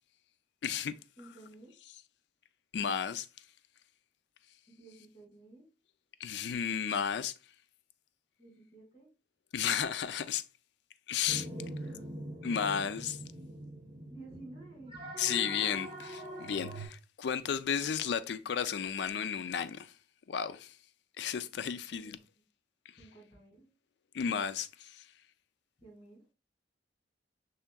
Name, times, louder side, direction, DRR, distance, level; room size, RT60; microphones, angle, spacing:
voice 1, 0.6-1.0 2.7-3.3 6.2-7.3 9.5-10.4 11.1-11.5 12.4-13.2 15.2-19.9 20.3-20.7 21.2-22.2 24.1-25.0, left 7 dB, 70° left, 0.4 m, -33 dB
voice 2, 1.2-1.7 4.7-5.7 8.4-9.1 11.3-12.1 14.1-15.1 21.9-22.4 23.0-23.7 25.8-26.2, right 2 dB, 30° left, 2.6 m, -53 dB
sound 1, 11.3-16.9, right 1 dB, 25° right, 1.0 m, -43 dB
5.6 x 3.5 x 2.2 m
head